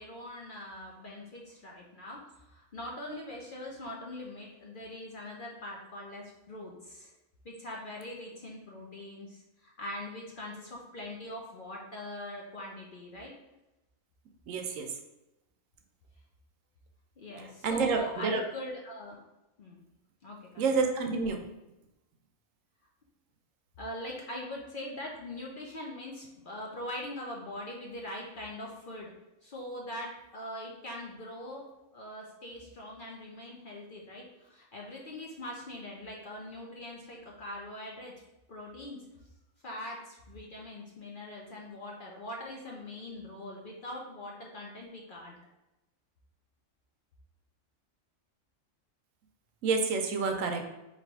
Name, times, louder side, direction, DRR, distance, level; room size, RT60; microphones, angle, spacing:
voice 1, 0.0-7.1 7.4-13.3 17.2-19.2 19.6-19.8 20.2-20.7 23.8-29.1 29.4-31.7 31.9-38.1 38.5-39.0 39.6-45.3, left 1 dB, 50° left, -2 dB, 0.7 m, -42 dB
voice 2, 14.5-14.9 17.6-18.4 20.6-21.4 49.6-50.6, right 4 dB, 75° right, 4 dB, 1.0 m, -28 dB
3.3 x 2.6 x 4.5 m, 0.96 s
omnidirectional pair, 1.4 m